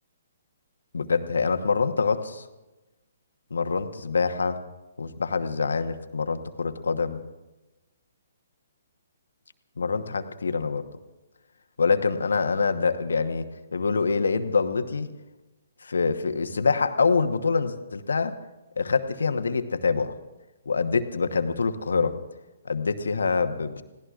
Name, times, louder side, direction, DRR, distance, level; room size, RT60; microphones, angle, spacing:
voice 1, 0.9-2.4 3.5-4.6 5.0-7.2 9.8-10.9 11.8-15.1 15.8-18.3 18.8-20.1 20.7-22.1 22.6-23.8, left 4 dB, 75° left, 8 dB, 1.1 m, -25 dB
29.5 x 17.5 x 2.5 m, 1.1 s
figure-of-eight pair, 130°, 0 cm